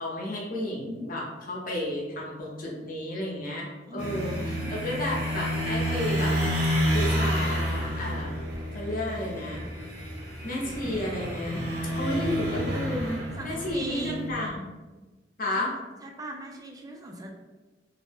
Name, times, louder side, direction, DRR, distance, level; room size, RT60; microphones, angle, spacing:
voice 1, 0.0-3.7 3.9-6.4 6.9-8.3 8.7-9.6 10.4-11.7 11.9-14.6 15.4-15.7, left 1 dB, 50° left, -3 dB, 0.8 m, -32 dB
voice 2, 3.9-4.7 13.4-14.2 16.0-17.3, right 1 dB, 20° right, 1 dB, 0.3 m, -39 dB
sound 1, 4.0-14.5, equal, 65° right, 0.8 m, -30 dB
2.6 x 2.0 x 3.3 m, 1.2 s
head